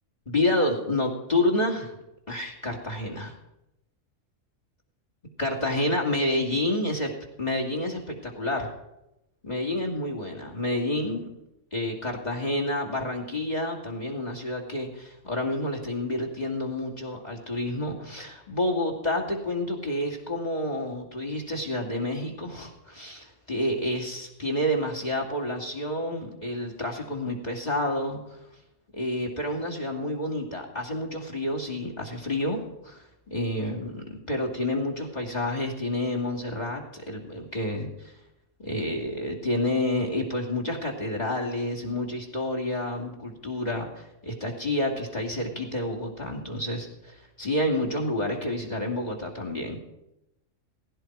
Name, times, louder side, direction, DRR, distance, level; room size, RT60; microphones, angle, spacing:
voice 1, 0.3-1.9 2.3-3.3 5.4-7.1 7.4-8.7 9.4-11.3 11.7-28.4 28.9-38.1 38.6-49.8, left 1 dB, 30° left, 1 dB, 2.7 m, -29 dB
17.5 x 16.5 x 4.7 m, 0.90 s
omnidirectional pair, 1.3 m